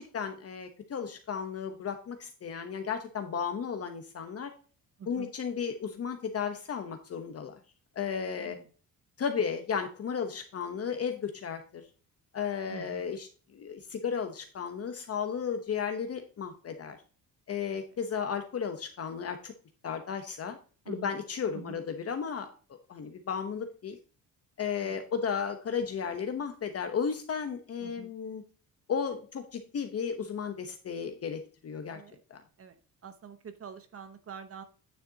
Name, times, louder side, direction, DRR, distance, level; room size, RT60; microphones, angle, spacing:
voice 1, 0.0-4.5 5.1-7.6 8.0-8.6 9.2-11.8 12.3-17.0 17.5-19.5 19.8-20.6 20.9-22.5 22.9-24.0 24.6-28.4 28.9-32.0 32.3-32.4, left 6 dB, 40° left, 6 dB, 1.0 m, -34 dB
voice 2, 5.0-5.3 8.4-8.7 12.7-13.1 17.7-18.0 20.8-21.2 21.5-21.9 24.8-25.0 27.8-28.1 31.9-32.2 32.6-32.8 33.0-34.6, right 7 dB, 40° right, 9 dB, 1.0 m, -46 dB
9.6 x 6.6 x 2.8 m, 0.38 s
cardioid pair, 135°, 35 cm